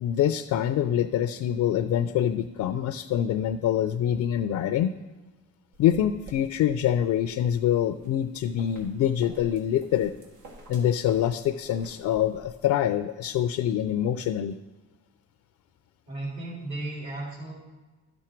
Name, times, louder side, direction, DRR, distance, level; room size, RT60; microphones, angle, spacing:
voice 1, 0.0-4.9 5.8-10.1 10.7-14.6, left 10 dB, 75° left, 9 dB, 0.5 m, -25 dB
sound 1, 5.7-12.5, right 2 dB, 85° right, 1.6 m, -49 dB
voice 2, 16.1-17.5, right 2 dB, 65° right, -6 dB, 3.6 m, -35 dB
11.5 x 6.1 x 4.5 m, 1.2 s
cardioid pair, 90°, 30 cm